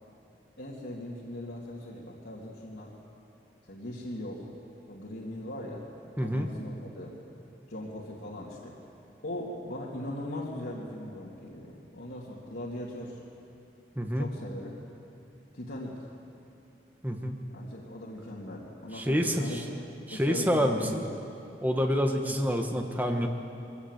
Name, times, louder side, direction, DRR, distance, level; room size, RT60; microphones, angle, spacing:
voice 1, 0.6-2.9 3.7-4.5 4.9-5.8 6.2-7.1 7.7-8.7 9.2-13.2 14.2-14.7 15.5-15.9 17.5-19.6 20.1-21.0, left 1 dB, 85° left, -6 dB, 2.4 m, -39 dB
voice 2, 6.2-6.5 14.0-14.3 17.0-17.4 18.9-19.6 20.1-21.0 21.6-23.3, equal, 10° right, 3 dB, 1.3 m, -27 dB
21.5 x 16.5 x 8.1 m, 2.7 s
head